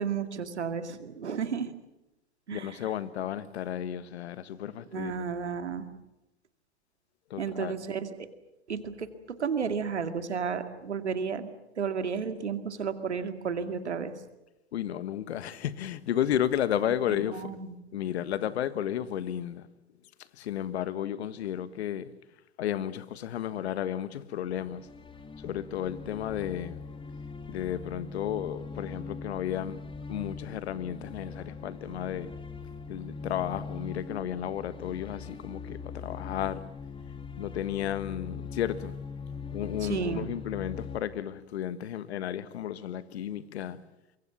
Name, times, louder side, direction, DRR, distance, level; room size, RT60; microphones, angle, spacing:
voice 1, 0.0-1.7 2.5-2.8 4.9-5.8 7.4-8.1 8.7-9.1 9.4-11.5 11.8-14.1 17.1-17.8 39.8-40.3, right 6 dB, 90° right, 2.3 m, -32 dB
voice 2, 2.5-5.1 7.3-7.7 14.7-17.5 17.9-19.7 20.4-22.1 22.6-24.9 25.4-26.8 27.5-29.8 30.1-32.3 32.9-36.6 37.4-38.9 39.5-43.8, left 10 dB, 70° left, 1.5 m, -33 dB
sound 1, 24.5-41.0, left 5 dB, 15° left, 2.4 m, -41 dB
24.5 x 23.0 x 7.3 m
hypercardioid pair, 100°, 33 cm